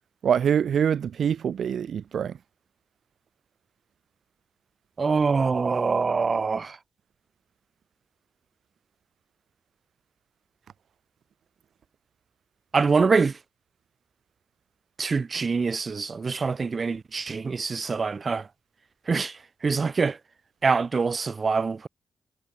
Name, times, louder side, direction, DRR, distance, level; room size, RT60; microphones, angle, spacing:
voice 1, 0.2-2.3, right 8 dB, 75° right, 0.8 m, -24 dB
voice 2, 5.0-6.8 12.7-13.3 15.0-18.4 19.1-19.3 19.6-20.2 20.6-21.9, right 4 dB, 45° right, 1.0 m, -24 dB
cardioid pair, 70°, 0 cm